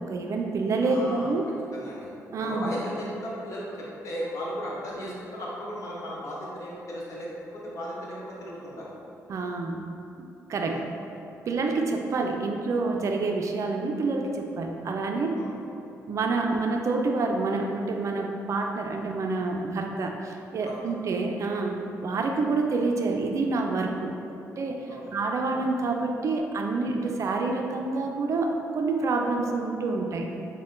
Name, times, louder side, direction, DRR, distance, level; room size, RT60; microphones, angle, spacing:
voice 1, 0.0-1.5 2.3-2.7 9.3-9.9 10.2-10.8 11.5-15.4 16.1-24.1 24.6-30.3, right 3 dB, 55° right, 2 dB, 0.4 m, -28 dB
voice 2, 0.8-1.3 1.7-2.1 2.4-3.1 3.4-8.9 10.6-10.8 15.4-15.5 20.6-20.8 24.9-25.1, equal, 55° left, -5 dB, 0.9 m, -36 dB
6.1 x 2.1 x 2.5 m, 2.8 s
cardioid pair, 85°, 6 cm